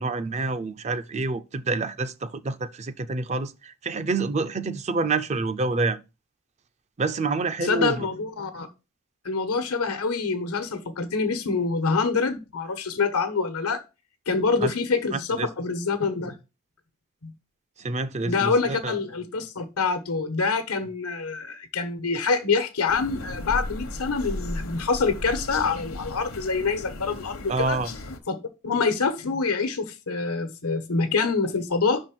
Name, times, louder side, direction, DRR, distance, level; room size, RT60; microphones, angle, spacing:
voice 1, 0.0-6.0 7.0-8.1 14.6-14.7 15.1-15.5 17.8-18.9 27.5-27.9, right 3 dB, 30° right, 0.5 m, -27 dB
voice 2, 7.6-8.7 9.2-13.8 14.3-16.3 17.2-17.3 18.2-27.8 28.3-28.4 28.6-32.0, left 4 dB, 85° left, 1.2 m, -26 dB
sound 1, 22.9-28.2, left 2 dB, 70° left, 1.0 m, -35 dB
5.7 x 4.4 x 6.0 m
head